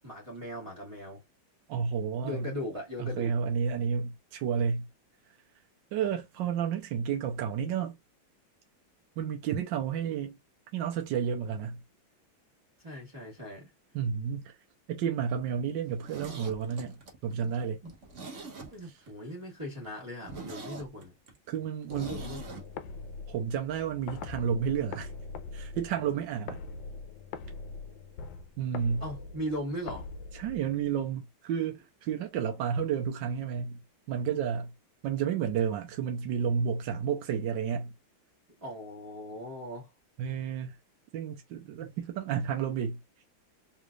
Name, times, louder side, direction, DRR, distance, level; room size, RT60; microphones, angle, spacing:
voice 1, 0.0-1.2 2.2-3.3 12.8-13.7 17.4-17.5 17.8-17.9 18.7-21.1 21.9-22.4 29.0-30.1 38.6-39.9, equal, 15° right, 1.4 m, -39 dB
voice 2, 1.7-2.5 3.0-4.9 5.9-8.0 9.2-10.4 10.7-11.8 13.9-14.5 14.9-17.0 17.2-17.8 21.5-22.2 23.3-25.1 25.5-26.6 28.6-29.0 30.3-33.8 34.1-34.7 35.0-37.9 40.2-40.8 41.1-43.0, right 7 dB, 70° right, 1.3 m, -31 dB
Zipper (clothing), 15.8-19.1 19.4-19.5 19.9-20.0 20.2-22.6 22.9-23.0, right 3 dB, 45° right, 1.0 m, -44 dB
sound 1, 22.0-31.0, left 4 dB, 75° left, 1.2 m, -43 dB
3.9 x 3.2 x 2.3 m
omnidirectional pair, 2.3 m